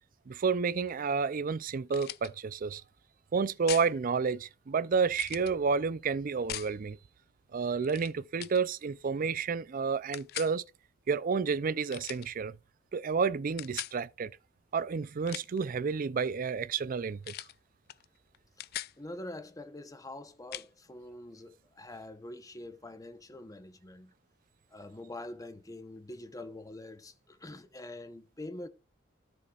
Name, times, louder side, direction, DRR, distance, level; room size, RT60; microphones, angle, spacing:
voice 1, 0.3-2.8 3.3-7.0 7.5-10.6 11.1-12.6 12.9-14.3 14.7-17.3, right 5 dB, 45° right, 0.4 m, -30 dB
sound 1, 1.9-2.3 3.7-3.9 5.1-5.5 6.5-6.7 7.8-8.1 8.4-8.6 10.1-10.5 11.9-12.3 13.6-14.0 15.1-15.6 17.2-17.5 17.9-18.0 18.3-18.9 20.5-20.7, left 14 dB, 55° left, 0.3 m, -40 dB
voice 2, 19.0-24.1 24.7-28.7, left 1 dB, 20° left, 0.9 m, -45 dB
13.0 x 6.9 x 2.4 m
head